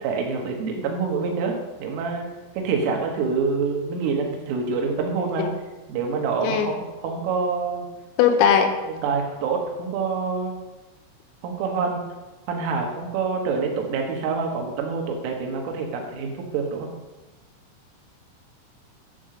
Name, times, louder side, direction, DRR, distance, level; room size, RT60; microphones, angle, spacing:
voice 1, 0.0-2.3 2.6-5.5 5.9-6.7 7.0-7.9 8.9-10.6 11.4-12.0 12.5-16.9, right 5 dB, 75° right, 2 dB, 3.8 m, -26 dB
voice 2, 8.2-8.7, left 8 dB, 85° left, 6 dB, 3.6 m, -19 dB
12.0 x 7.1 x 3.8 m, 1.1 s
omnidirectional pair, 6.0 m